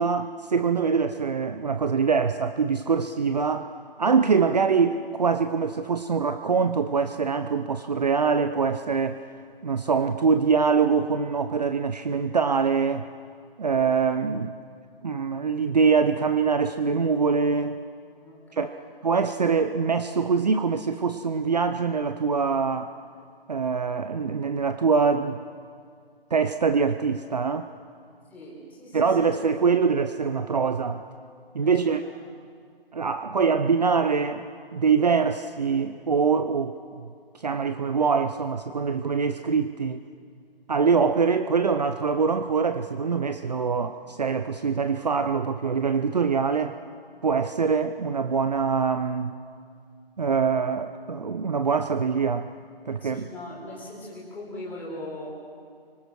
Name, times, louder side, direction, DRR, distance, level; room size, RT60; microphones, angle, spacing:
voice 1, 0.0-3.7 4.0-9.2 9.6-13.0 13.6-14.5 15.0-17.8 18.5-18.7 19.0-22.9 23.5-25.4 26.3-27.7 28.9-31.0 31.5-32.0 32.9-34.5 34.7-37.1 37.4-40.0 40.7-46.8 47.2-49.4 50.2-52.5 52.9-53.3, right 5 dB, 45° right, 10 dB, 0.8 m, -24 dB
voice 2, 18.2-18.9 28.3-29.3 31.6-32.0 53.0-55.3, left 1 dB, 5° left, -5 dB, 4.0 m, -40 dB
29.0 x 24.5 x 6.3 m, 2.1 s
figure-of-eight pair, 155°, 29 cm